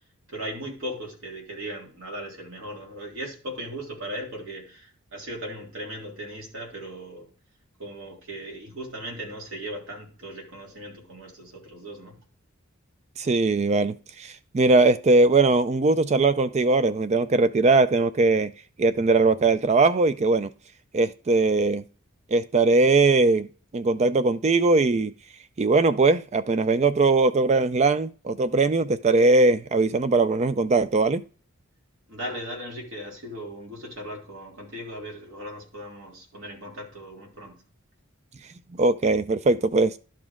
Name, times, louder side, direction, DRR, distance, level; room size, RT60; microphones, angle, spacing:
voice 1, 0.3-7.3 7.8-12.2 32.1-37.6, equal, 65° right, 3.3 m, -38 dB
voice 2, 13.2-18.5 18.8-20.5 20.9-21.8 22.3-23.5 23.7-25.1 25.6-31.2 38.8-40.0, right 3 dB, 30° right, 0.4 m, -20 dB
11.5 x 5.1 x 3.6 m
head